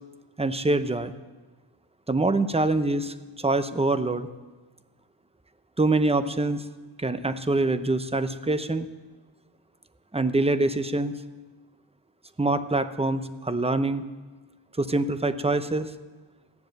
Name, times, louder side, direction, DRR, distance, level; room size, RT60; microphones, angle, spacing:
voice 1, 0.4-1.1 2.1-4.3 5.8-6.6 7.0-8.9 10.1-11.2 12.4-14.0 14.8-15.9, right 2 dB, 10° right, 11 dB, 0.7 m, -25 dB
14.5 x 10.5 x 7.8 m, 1.3 s
wide cardioid pair, 85°, 49 cm